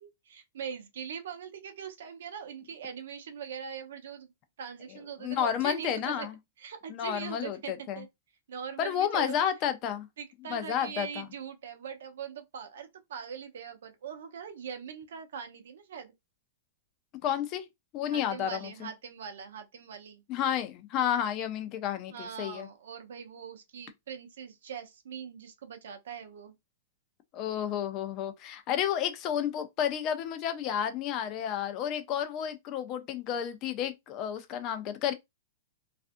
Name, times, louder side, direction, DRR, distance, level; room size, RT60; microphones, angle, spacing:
voice 1, 0.0-4.3 4.6-6.3 6.6-8.1 8.5-9.4 10.2-16.1 18.0-20.2 22.1-26.6, right 7 dB, 75° right, 0.6 m, -41 dB
voice 2, 5.2-6.3 6.9-8.0 8.8-10.1 10.5-11.3 17.2-17.7 17.9-18.9 20.3-22.7 27.3-35.1, left 9 dB, 35° left, 0.5 m, -31 dB
2.4 x 2.4 x 2.5 m
hypercardioid pair, 145°, 0 cm